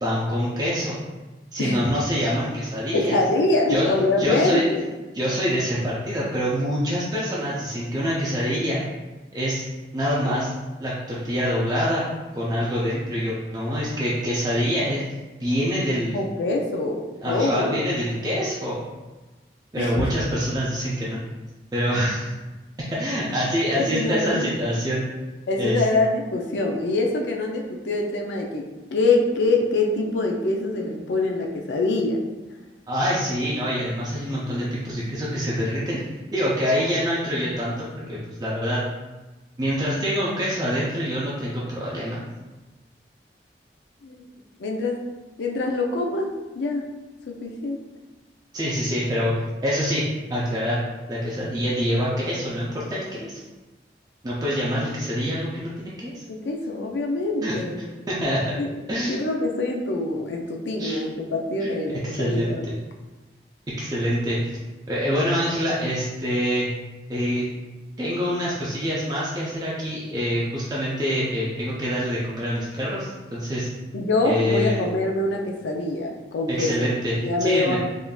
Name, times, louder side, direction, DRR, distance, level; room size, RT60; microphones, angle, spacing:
voice 1, 0.0-0.9 1.5-3.2 3.7-3.9 4.2-4.6 5.1-8.8 9.3-9.6 9.9-10.5 10.8-12.0 12.3-15.0 15.4-16.2 17.2-18.8 19.7-21.2 21.7-22.3 22.9-25.0 25.6-25.8 32.9-36.0 36.3-38.8 39.6-42.2 48.5-49.3 49.6-50.0 50.3-50.8 51.1-53.4 54.2-56.2 57.4-57.5 58.1-58.6 58.9-59.2 60.8-61.1 61.6-61.7 62.0-62.7 63.8-64.4 64.9-66.7 67.1-67.5 68.0-73.7 74.2-74.8 76.5-77.1 77.4-77.8, equal, 20° right, -7 dB, 0.4 m, -25 dB
voice 2, 2.9-4.8 16.1-17.0 17.3-17.8 19.8-20.1 23.7-24.5 25.5-28.6 28.9-32.2 44.0-44.2 44.6-45.0 45.4-46.9 47.3-47.8 56.3-57.8 58.6-58.7 59.1-62.7 73.9-76.9 77.2-77.8, left 2 dB, 85° left, 1 dB, 0.4 m, -24 dB
3.6 x 2.5 x 2.3 m, 1.2 s
head